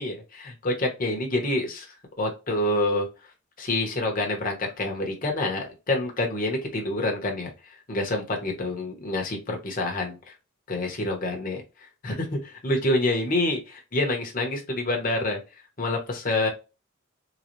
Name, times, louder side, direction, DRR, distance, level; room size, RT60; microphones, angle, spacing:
voice 1, 0.0-3.1 3.6-7.5 7.9-10.2 10.7-11.6 12.0-15.4 15.8-16.5, left 2 dB, 45° left, 1 dB, 1.1 m, -27 dB
4.0 x 2.3 x 3.0 m, 0.28 s
head